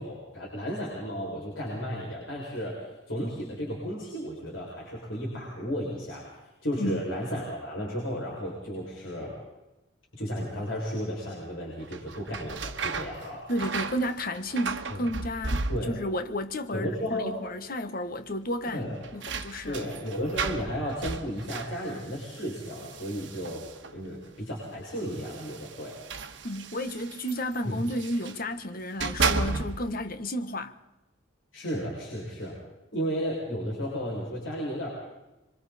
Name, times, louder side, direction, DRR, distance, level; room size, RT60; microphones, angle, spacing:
voice 1, 0.0-6.3 6.6-9.4 10.1-13.4 14.9-15.0 15.7-15.9 16.7-17.4 18.7-19.0 19.6-26.0 27.6-27.8 31.5-32.6 32.9-34.9, equal, 80° left, 6.5 m, -33 dB
sound 1, 11.8-16.2 16.5-17.2 17.5-17.6 18.6-24.1 24.9-28.4 28.8-30.0, right 4 dB, 60° right, 1.4 m, -34 dB
voice 2, 13.5-19.8 26.4-30.7, equal, 45° left, 1.3 m, -32 dB
26.5 x 25.0 x 4.3 m
head